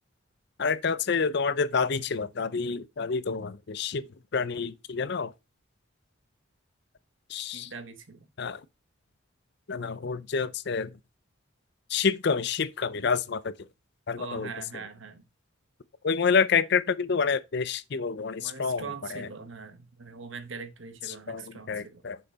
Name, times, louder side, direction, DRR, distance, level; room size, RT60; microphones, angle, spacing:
voice 1, 0.6-5.3 7.3-7.7 8.4-8.6 9.7-10.9 11.9-13.7 14.1-14.5 16.0-18.9 19.1-19.3 21.1-22.2, left 5 dB, 55° left, 0.5 m, -28 dB
voice 2, 7.5-8.3 14.2-15.2 18.4-22.0, right 5 dB, 65° right, 1.1 m, -42 dB
6.7 x 5.7 x 4.0 m
head